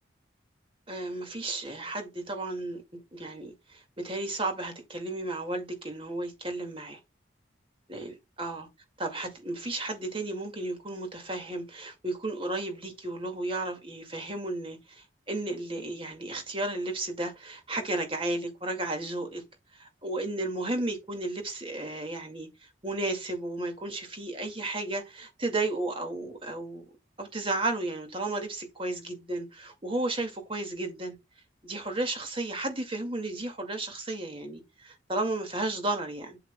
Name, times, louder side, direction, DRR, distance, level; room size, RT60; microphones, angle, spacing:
voice 1, 0.9-7.0 7.9-8.7 9.0-19.4 19.7-26.8 27.2-31.2 31.6-36.4, right 2 dB, 25° right, 2.1 m, -33 dB
8.1 x 7.9 x 2.3 m
head